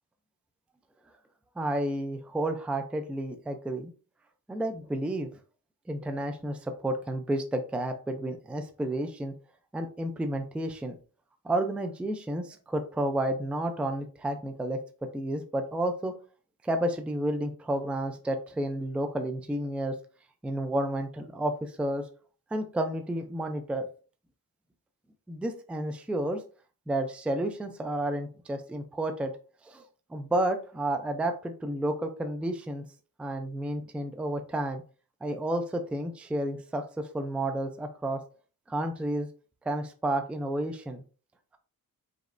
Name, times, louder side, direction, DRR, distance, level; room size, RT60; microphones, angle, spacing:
voice 1, 1.6-3.9 4.5-5.3 5.9-9.3 9.7-11.0 11.4-14.8 15.1-16.1 16.6-19.9 20.4-22.0 22.5-23.9 25.3-26.4 26.9-29.3 29.6-29.8 30.1-32.8 33.2-34.8 35.2-38.2 38.7-39.3 39.6-41.0, right 1 dB, 5° right, 6 dB, 0.4 m, -31 dB
5.0 x 3.1 x 2.5 m, 0.37 s
wide cardioid pair, 155°, 37 cm